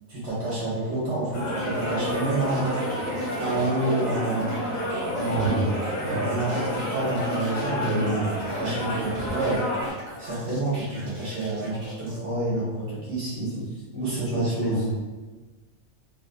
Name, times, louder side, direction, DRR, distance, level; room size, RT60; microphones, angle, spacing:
voice 1, 0.1-2.8 3.4-4.6 5.1-5.9 6.2-8.1 8.4-9.6 10.2-13.6 14.0-14.8, right 2 dB, 75° right, -8 dB, 1.4 m, -29 dB
sound 1, 1.3-9.9, equal, 25° right, 1.7 m, -29 dB
sound 2, 1.6-12.2, equal, 55° right, 1.0 m, -43 dB
voice 2, 5.3-5.6 6.1-6.2 7.8-8.2 12.5-13.0 13.3-13.6 13.9-14.9, right 1 dB, 20° left, -9 dB, 1.2 m, -28 dB
2.8 x 2.8 x 2.4 m, 1.3 s
omnidirectional pair, 1.2 m